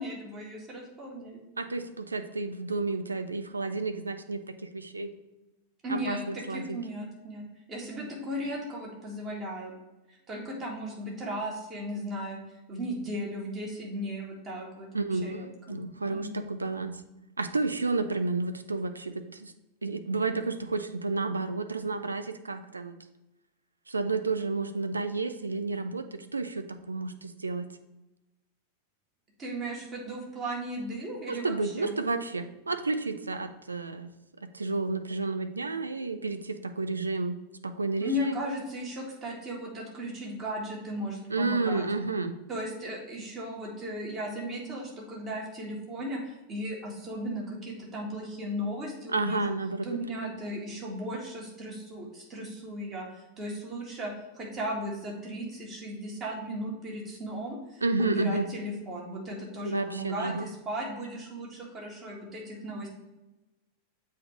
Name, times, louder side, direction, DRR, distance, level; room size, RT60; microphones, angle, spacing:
voice 1, 0.0-1.4 5.8-9.7 10.1-12.4 12.7-15.8 16.1-16.4 29.4-31.9 38.0-41.9 42.5-49.5 49.9-53.1 53.4-62.9, equal, 25° right, -2 dB, 1.8 m, -36 dB
voice 2, 1.6-5.1 5.9-6.8 14.9-17.0 17.4-19.5 19.8-23.0 23.9-27.7 31.3-34.1 34.4-37.4 37.6-38.4 41.3-42.4 49.1-49.9 50.2-50.3 57.8-58.5 59.6-60.5, right 3 dB, 80° right, 9 dB, 0.4 m, -31 dB
7.7 x 2.8 x 4.7 m, 0.99 s
figure-of-eight pair, 90°, 0 cm